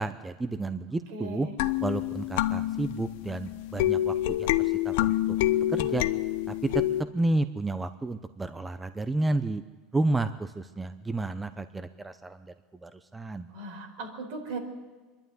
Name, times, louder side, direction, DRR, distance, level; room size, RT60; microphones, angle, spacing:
voice 1, 0.0-1.5 1.8-5.4 5.7-6.1 6.5-6.8 7.1-9.6 9.9-12.5 12.8-13.5, right 2 dB, 10° right, 11 dB, 0.7 m, -31 dB
voice 2, 1.1-1.6 13.5-14.6, right 2 dB, 75° right, 3 dB, 4.6 m, -38 dB
sound 1, 1.6-7.0, left 14 dB, 75° left, 0.8 m, -27 dB
24.0 x 11.5 x 9.5 m, 1.3 s
supercardioid pair, 125°, 0 cm